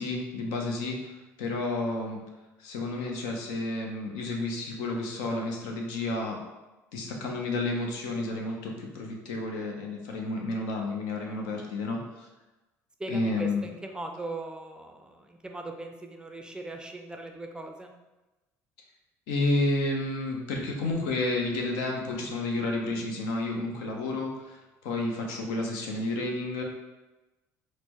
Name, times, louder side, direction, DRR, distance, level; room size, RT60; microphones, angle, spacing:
voice 1, 0.0-2.2 2.6-6.4 6.9-12.3 13.1-13.6 19.3-26.6, left 2 dB, 80° left, 1 dB, 0.6 m, -31 dB
voice 2, 13.0-17.9, right 2 dB, 10° right, 3 dB, 0.4 m, -39 dB
4.2 x 2.0 x 2.9 m, 1.1 s
supercardioid pair, 80°, 8 cm